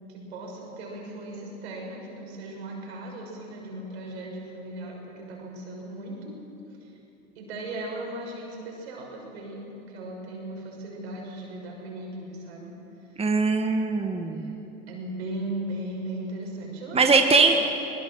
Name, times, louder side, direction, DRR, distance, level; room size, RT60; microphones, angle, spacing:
voice 1, 0.1-6.4 6.8-7.0 7.3-12.7 13.0-13.2 14.3-14.6 14.9-17.3 17.5-17.7, right 1 dB, 80° right, -1 dB, 6.2 m, -37 dB
voice 2, 13.2-14.5 16.9-17.6, right 4 dB, 20° right, 4 dB, 1.7 m, -21 dB
22.0 x 20.5 x 6.4 m, 2.9 s
hypercardioid pair, 80°, 32 cm